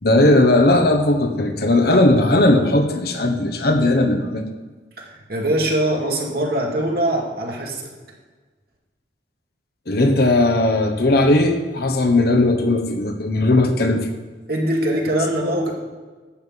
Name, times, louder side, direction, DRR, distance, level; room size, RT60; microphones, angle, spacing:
voice 1, 0.0-4.5 9.9-14.1, left 2 dB, 55° left, 6 dB, 1.2 m, -17 dB
voice 2, 5.0-7.8 14.5-15.7, right 1 dB, 55° right, -1 dB, 2.3 m, -22 dB
11.5 x 5.7 x 8.0 m, 1.3 s
head